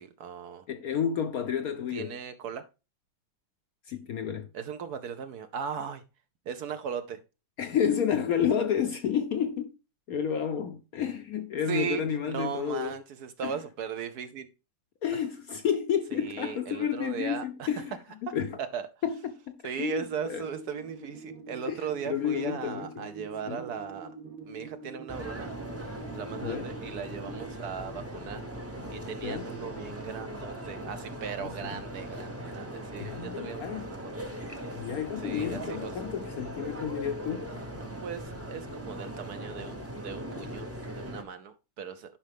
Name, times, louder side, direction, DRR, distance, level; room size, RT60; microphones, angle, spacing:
voice 1, 0.0-0.6 1.9-2.6 4.5-6.0 6.5-7.2 11.7-14.5 15.1-15.2 16.1-18.0 18.6-18.9 19.6-24.2 24.5-25.5 25.8-28.4 28.9-34.3 35.2-35.9 38.0-42.2, right 7 dB, 65° right, 1.0 m, -38 dB
voice 2, 0.7-2.2 3.9-4.5 7.6-9.7 10.1-13.0 13.4-13.5 15.0-17.9 18.3-18.6 19.0-20.4 21.7-22.9 23.5-23.6 26.4-26.7 29.2-29.5 31.4-31.8 33.0-33.9 34.8-37.5, left 8 dB, 65° left, 0.9 m, -30 dB
sound 1, 20.0-27.5, right 3 dB, 85° right, 1.8 m, -46 dB
sound 2, 25.1-41.2, right 1 dB, 15° right, 0.5 m, -39 dB
10.0 x 5.5 x 3.4 m
omnidirectional pair, 2.1 m